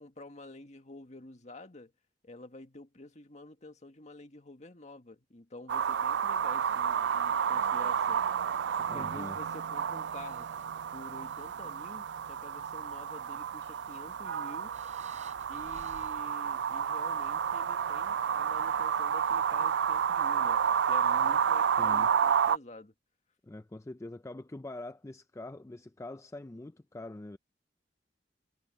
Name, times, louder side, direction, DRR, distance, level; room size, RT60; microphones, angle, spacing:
voice 1, 0.0-1.9 2.2-8.2 8.8-10.5 10.9-15.0 15.5-22.9, left 2 dB, 40° left, 1.8 m, -49 dB
sound 1, 5.7-22.6, right 7 dB, 90° right, 0.4 m, -30 dB
sound 2, 6.5-7.5 9.0-9.1 9.8-10.8 11.1-12.0 12.5-12.6 13.3-22.4, right 3 dB, 45° right, 3.8 m, -61 dB
voice 2, 8.9-9.4 21.8-22.1 23.4-27.4, left 2 dB, 15° left, 0.4 m, -44 dB
head